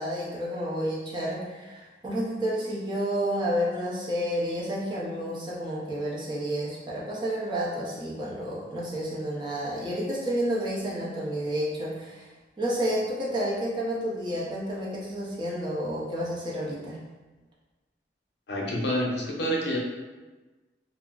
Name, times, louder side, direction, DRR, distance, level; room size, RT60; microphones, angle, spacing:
voice 1, 0.0-12.3 12.6-17.0, equal, 25° right, -5 dB, 0.5 m, -30 dB
voice 2, 18.5-19.8, equal, 75° left, -2 dB, 0.6 m, -28 dB
2.3 x 2.0 x 3.6 m, 1.2 s
head